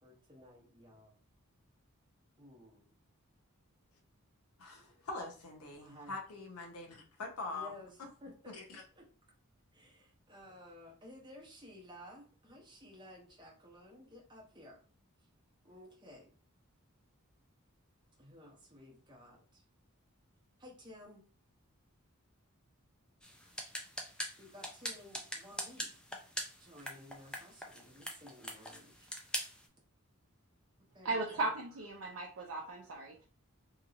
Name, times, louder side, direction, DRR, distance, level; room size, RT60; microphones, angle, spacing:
voice 1, 0.0-1.1 2.4-2.9 5.7-6.1 7.5-9.1 9.7-14.8 15.6-16.3 18.2-19.6 20.6-21.2 24.4-26.0 26.6-29.1 30.9-31.4, left 1 dB, 20° right, -2 dB, 0.8 m, -55 dB
voice 2, 4.6-8.1 8.5-8.8, left 3 dB, 90° left, 1 dB, 0.6 m, -44 dB
sound 1, 23.2-29.7, equal, 5° left, 0.3 m, -43 dB
voice 3, 31.0-33.2, right 2 dB, 75° right, -1 dB, 0.5 m, -37 dB
2.8 x 2.7 x 2.4 m, 0.39 s
head